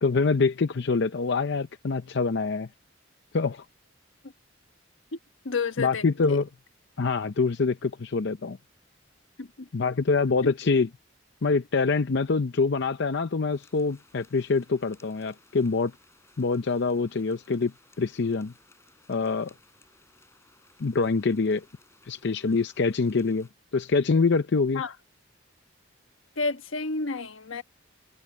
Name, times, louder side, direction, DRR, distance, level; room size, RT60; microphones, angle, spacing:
voice 1, 0.0-2.7 3.3-3.6 5.8-6.5 7.0-8.6 9.7-10.9 11.4-15.9 16.4-17.7 18.0-18.5 19.1-19.5 20.8-21.6 22.1-23.5 23.7-24.8, left 4 dB, 60° left, 0.6 m, -25 dB
voice 2, 5.4-6.4 9.4-9.7 10.4-10.5 24.7-24.9 26.4-27.6, left 4 dB, 85° left, 1.3 m, -31 dB
sound 1, 13.5-23.5, left 3 dB, 15° left, 5.6 m, -61 dB
head